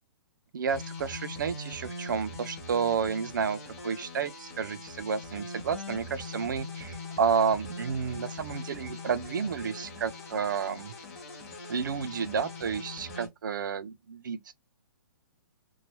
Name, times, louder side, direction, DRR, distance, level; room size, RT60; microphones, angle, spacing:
voice 1, 0.5-10.9 11.7-14.6, right 6 dB, 60° right, 0.4 m, -31 dB
sound 1, 0.7-13.3, left 2 dB, 40° left, 1.1 m, -42 dB
2.9 x 2.2 x 2.9 m
hypercardioid pair, 180°, 12 cm